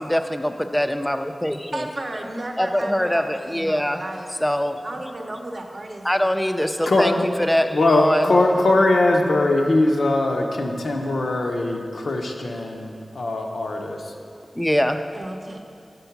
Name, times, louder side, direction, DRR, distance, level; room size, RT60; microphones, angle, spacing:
voice 1, 0.0-1.9 2.6-4.0 4.4-4.8 6.0-8.4 14.6-15.0, equal, 10° left, 8 dB, 0.3 m, -23 dB
voice 2, 1.7-4.4 4.8-6.4 8.1-8.6 15.1-15.6, right 1 dB, 55° right, 3 dB, 0.7 m, -34 dB
voice 3, 6.9-7.2 7.7-14.0, left 2 dB, 80° left, 2 dB, 0.6 m, -21 dB
6.9 x 3.8 x 5.7 m, 2.4 s
wide cardioid pair, 55°, 0 cm